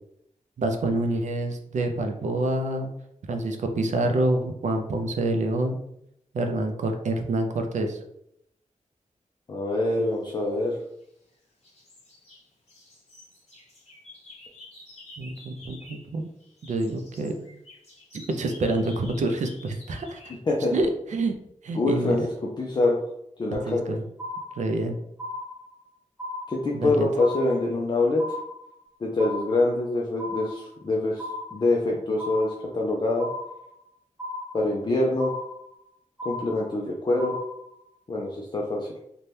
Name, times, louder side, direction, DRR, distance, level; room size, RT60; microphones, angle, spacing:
voice 1, 0.6-2.9 3.3-5.8 6.3-8.0 15.2-16.3 16.7-17.3 18.1-20.2 20.7-21.4 21.6-22.3 23.5-24.0 24.6-25.0 26.7-27.1, right 2 dB, 65° right, 4 dB, 0.4 m, -27 dB
voice 2, 9.5-10.8 20.5-20.7 21.7-22.3 22.6-23.0 23.4-24.0 26.5-28.4 29.0-33.3 34.5-35.3 36.2-37.4 38.1-38.9, left 2 dB, 35° left, -2 dB, 0.4 m, -25 dB
sound 1, 10.5-11.3 11.6-16.1 16.4-20.4, left 2 dB, 55° left, 0.9 m, -50 dB
sound 2, 23.5-23.9 24.2-24.9 25.2-25.9 26.2-26.9 27.2-27.9 28.2-28.9 29.2-29.9 30.2-30.9 31.2-31.9 32.2-32.9 33.2-33.9 34.2-34.9 35.2-35.9 36.2-36.9 37.2-37.9, left 2 dB, 5° right, 0.8 m, -36 dB
2.7 x 2.2 x 3.2 m, 0.76 s
wide cardioid pair, 145°, 13 cm